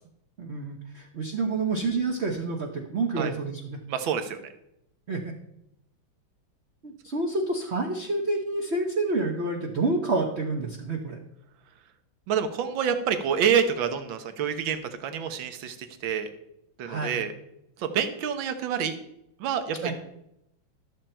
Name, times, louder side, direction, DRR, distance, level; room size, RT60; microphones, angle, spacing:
voice 1, 0.4-3.8 5.1-5.3 6.8-11.2 16.8-17.2 19.8-19.9, right 3 dB, 40° right, 1 dB, 1.0 m, -28 dB
voice 2, 3.9-4.4 12.3-15.8 16.0-16.3 16.8-17.3 17.8-19.0 19.4-19.9, right 7 dB, 70° right, 9 dB, 1.7 m, -27 dB
12.5 x 7.3 x 4.4 m, 0.81 s
omnidirectional pair, 2.3 m